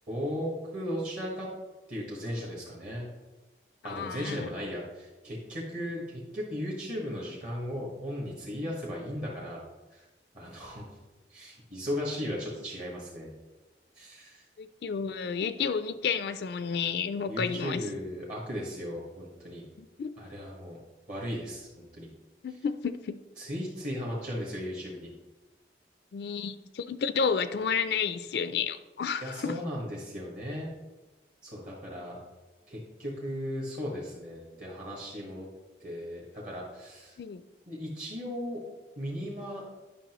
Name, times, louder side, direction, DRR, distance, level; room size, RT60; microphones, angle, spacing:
voice 1, 0.1-1.5 1.9-3.1 3.8-9.6 9.9-10.0 10.3-10.9 11.3-13.3 13.9-14.5 17.3-19.6 20.2-20.8 21.1-22.1 23.4-25.1 29.2-30.7 31.4-32.2 32.7-35.5 35.8-37.2 37.7-38.6 39.0-39.7, equal, 45° right, -3 dB, 1.5 m, -36 dB
voice 2, 3.8-4.5 14.6-17.9 19.8-20.1 22.4-23.2 26.1-29.6 37.2-37.4, left 6 dB, 65° left, 12 dB, 0.3 m, -31 dB
10.0 x 5.8 x 3.0 m, 1.1 s
head